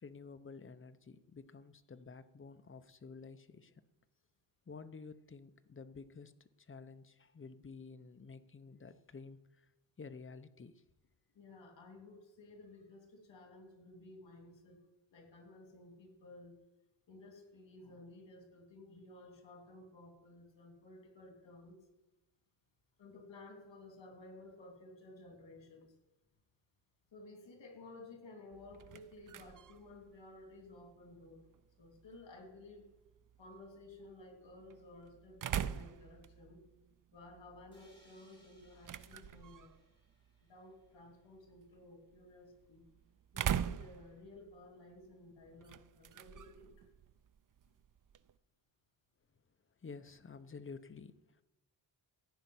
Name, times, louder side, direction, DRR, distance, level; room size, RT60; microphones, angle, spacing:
voice 1, 0.0-3.8 4.7-6.3 6.6-9.7 10.0-10.8 49.8-51.4, left 4 dB, 30° left, 11 dB, 0.8 m, -51 dB
voice 2, 11.3-14.8 15.1-16.6 17.1-21.9 23.0-25.9 27.1-31.5 31.8-32.8 33.4-36.6 37.1-39.7 40.4-42.8 43.3-46.7, left 2 dB, 85° left, 4 dB, 3.2 m, -55 dB
sound 1, 28.5-48.4, right 9 dB, 50° right, 0.5 m, -45 dB
sound 2, 37.7-41.5, equal, 10° left, 4.4 m, -70 dB
15.0 x 5.6 x 9.5 m, 1.0 s
wide cardioid pair, 125°, 43 cm